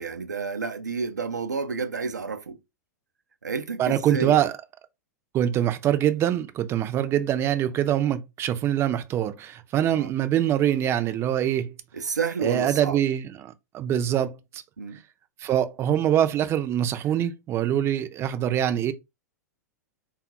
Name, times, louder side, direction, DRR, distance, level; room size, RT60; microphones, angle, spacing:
voice 1, 0.0-2.6 3.4-4.4 9.9-10.1 11.9-13.0 14.8-15.0, right 5 dB, 85° right, 0.4 m, -30 dB
voice 2, 3.8-4.5 5.3-11.7 12.4-14.6 15.4-18.9, right 11 dB, 25° right, 0.4 m, -24 dB
3.5 x 2.3 x 2.9 m
figure-of-eight pair, 100°, 9 cm